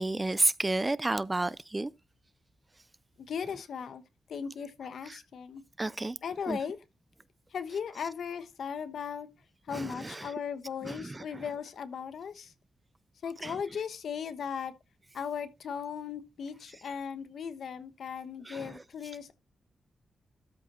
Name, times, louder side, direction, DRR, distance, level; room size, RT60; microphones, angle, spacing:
voice 1, 0.0-1.9 5.0-5.2 5.8-6.2 6.5-6.6 9.7-10.3 10.8-11.5 13.4-13.6 18.4-18.8, right 2 dB, 20° right, 0.4 m, -31 dB
voice 2, 3.3-4.0 4.3-5.6 6.2-6.8 7.5-9.3 9.7-12.5 13.2-14.7 15.1-19.3, left 7 dB, 75° left, 1.1 m, -37 dB
13.0 x 4.9 x 4.3 m
cardioid pair, 95°, 0 cm